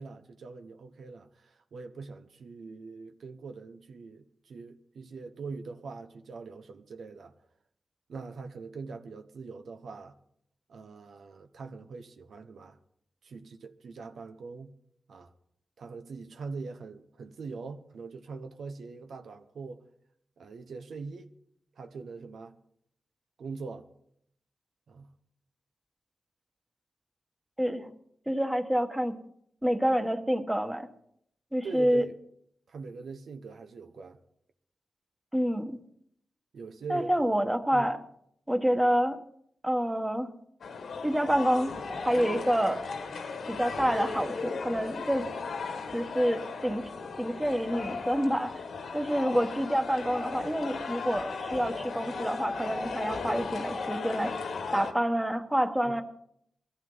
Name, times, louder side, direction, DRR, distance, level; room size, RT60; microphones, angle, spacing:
voice 1, 0.0-7.3 8.1-10.2 10.7-12.8 13.2-14.7 15.1-15.3 15.8-19.8 20.4-21.3 21.8-22.6 23.4-23.9 24.9-25.1 31.6-32.1 32.7-34.2 36.5-37.1 37.7-37.9 55.8-56.0, right 4 dB, 80° right, 1.1 m, -42 dB
voice 2, 27.6-27.9 28.3-29.1 29.6-30.9 31.5-32.0 35.3-35.8 36.9-38.0 38.5-39.2 39.6-40.3 41.0-41.7 42.0-42.9 43.5-45.3 45.9-46.9 47.2-48.6 48.9-54.4 54.7-56.0, equal, 10° right, 1.4 m, -27 dB
sound 1, 40.6-54.9, left 4 dB, 90° left, 1.9 m, -36 dB
21.5 x 14.5 x 4.0 m
wide cardioid pair, 95°, 0 cm